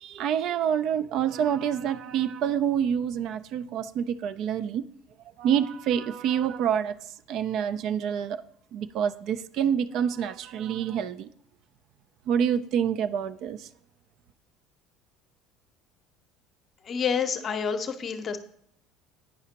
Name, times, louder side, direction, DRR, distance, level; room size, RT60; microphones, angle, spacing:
voice 1, 0.0-4.8 5.4-7.0 7.3-8.4 8.7-11.3 12.3-13.7, right 8 dB, 60° right, 0.3 m, -27 dB
voice 2, 16.8-18.4, left 6 dB, 40° left, 0.7 m, -28 dB
9.6 x 4.9 x 2.8 m
supercardioid pair, 85°, 0 cm